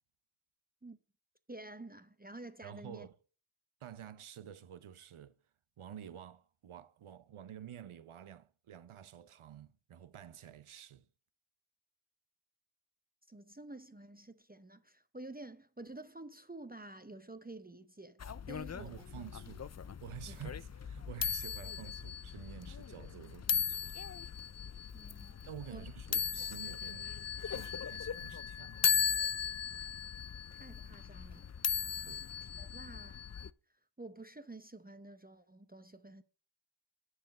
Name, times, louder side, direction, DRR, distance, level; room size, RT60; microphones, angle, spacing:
voice 1, 1.5-3.1 13.3-19.2 20.3-20.4 24.9-25.4 25.7-25.9 30.5-31.5 32.6-33.2 34.0-36.2, right 2 dB, 20° right, 0.7 m, -50 dB
voice 2, 2.6-3.2 3.8-5.4 5.8-11.1 18.8-19.6 20.0-23.9 25.4-27.2 27.4-28.8 32.0-32.3, right 9 dB, 85° right, 0.7 m, -50 dB
sound 1, 18.2-33.5, left 7 dB, 35° left, 0.4 m, -37 dB
10.5 x 4.9 x 6.4 m
wide cardioid pair, 70°, 48 cm